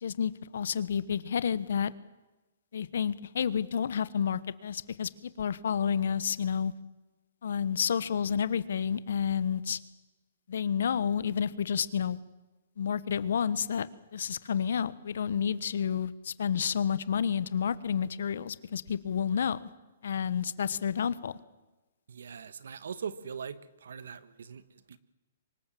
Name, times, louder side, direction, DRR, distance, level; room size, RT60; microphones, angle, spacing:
voice 1, 0.0-1.9 2.7-5.1 5.4-6.7 7.4-9.8 10.5-12.2 12.8-13.9 14.1-19.7 20.0-21.4, left 7 dB, 70° left, 17 dB, 1.2 m, -30 dB
voice 2, 22.1-25.0, right 6 dB, 80° right, 15 dB, 1.5 m, -41 dB
25.0 x 20.5 x 7.7 m, 1.1 s
hypercardioid pair, 165°, 0 cm